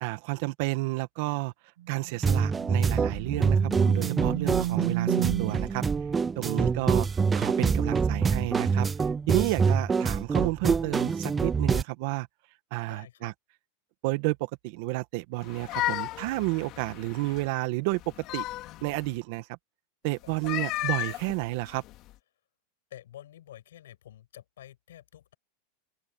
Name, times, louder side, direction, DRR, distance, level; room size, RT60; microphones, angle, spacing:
voice 1, 0.0-1.5 1.9-5.8 6.4-7.1 7.3-8.9 9.3-12.3 12.7-13.3 14.0-14.4 14.6-18.0 18.3-18.4 18.8-19.4 20.0-21.8, right 21 dB, 55° right, 1.8 m, -31 dB
sound 1, 1.8-5.7, right 14 dB, 80° right, 1.4 m, -32 dB
sound 2, 2.2-11.8, right 5 dB, 15° right, 0.3 m, -25 dB
voice 2, 12.8-13.3 20.2-20.4 22.9-25.4, left 12 dB, 90° left, 6.7 m, -49 dB
sound 3, 15.4-17.5 17.9-19.1 20.3-22.1, left 16 dB, 45° left, 2.5 m, -34 dB
open air
supercardioid pair, 140°, 0 cm